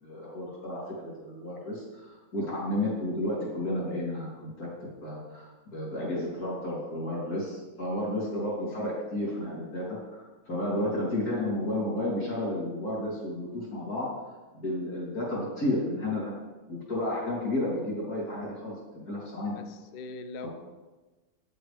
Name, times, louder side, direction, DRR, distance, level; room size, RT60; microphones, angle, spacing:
voice 1, 0.0-4.7 5.0-14.1 14.5-16.3 16.7-19.5, left 1 dB, 85° left, -6 dB, 4.1 m, -32 dB
voice 2, 19.5-20.5, left 3 dB, 60° left, 9 dB, 0.6 m, -41 dB
9.4 x 7.8 x 3.5 m, 1.2 s
omnidirectional pair, 1.6 m